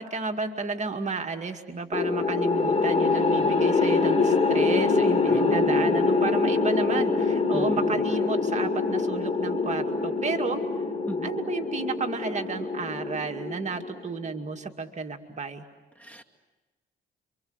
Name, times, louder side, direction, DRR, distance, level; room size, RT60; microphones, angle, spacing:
voice 1, 0.0-10.6 11.2-15.6, right 4 dB, 35° right, 4 dB, 2.2 m, -32 dB
sound 1, 1.9-14.2, left 4 dB, 35° left, 3.8 m, -25 dB
voice 2, 5.3-5.9 7.5-7.8 11.1-11.3 16.0-16.2, right 1 dB, 10° left, 5 dB, 2.4 m, -34 dB
29.0 x 25.5 x 8.0 m, 1.2 s
cardioid pair, 90°, 20 cm